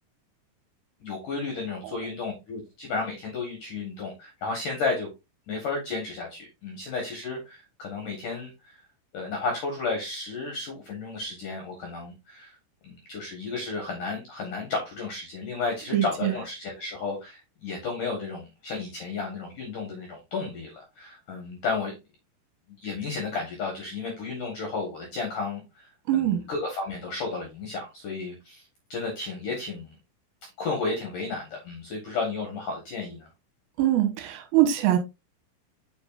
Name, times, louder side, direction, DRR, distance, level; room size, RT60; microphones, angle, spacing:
voice 1, 1.0-5.1 5.5-8.8 9.1-12.5 12.8-22.0 22.8-29.9 30.6-33.3, left 4 dB, 65° left, 2.1 m, -33 dB
voice 2, 15.9-16.3 26.1-26.4 33.8-35.0, right 12 dB, 80° right, 3.6 m, -23 dB
7.9 x 5.7 x 2.5 m
omnidirectional pair, 5.8 m